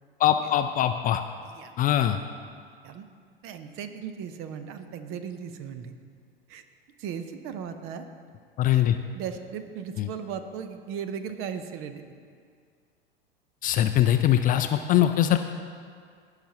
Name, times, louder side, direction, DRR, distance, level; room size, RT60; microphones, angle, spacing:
voice 1, 0.2-1.2 1.8-2.2 8.6-9.0 10.0-10.1 13.6-15.4, left 12 dB, 30° left, 8 dB, 0.4 m, -22 dB
voice 2, 1.4-1.7 2.0-2.2 2.8-3.0 3.4-5.9 6.5-6.6 7.0-8.1 8.7-8.8 9.1-12.0, right 7 dB, 45° right, 9 dB, 0.8 m, -37 dB
15.5 x 5.8 x 2.9 m, 2.1 s
hypercardioid pair, 85°, 29 cm